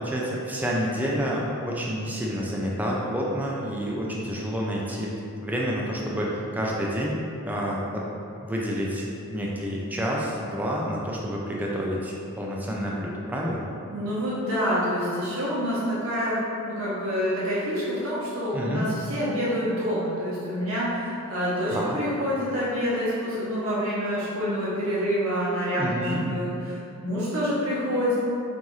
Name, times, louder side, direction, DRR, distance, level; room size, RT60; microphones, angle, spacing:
voice 1, 0.0-5.1 5.4-8.0 8.4-13.6 18.5-18.9 21.7-22.0 25.8-26.2, equal, 10° right, -4 dB, 0.4 m, -29 dB
voice 2, 13.9-28.1, equal, 65° right, -9 dB, 0.9 m, -27 dB
5.4 x 2.5 x 3.1 m, 2.7 s
head